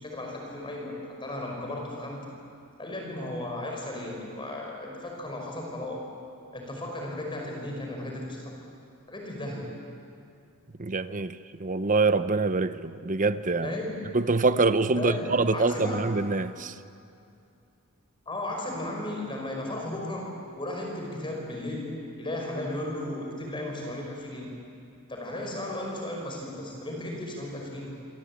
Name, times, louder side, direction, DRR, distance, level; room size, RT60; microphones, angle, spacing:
voice 1, 0.0-2.3 2.8-6.1 6.5-8.5 9.1-9.8 13.6-14.1 15.0-16.2 18.3-24.6 25.1-28.0, left 1 dB, 25° left, 0 dB, 5.2 m, -35 dB
voice 2, 10.8-13.8 14.1-16.7, right 3 dB, 35° right, 12 dB, 0.9 m, -25 dB
27.0 x 25.0 x 8.7 m, 2.5 s
head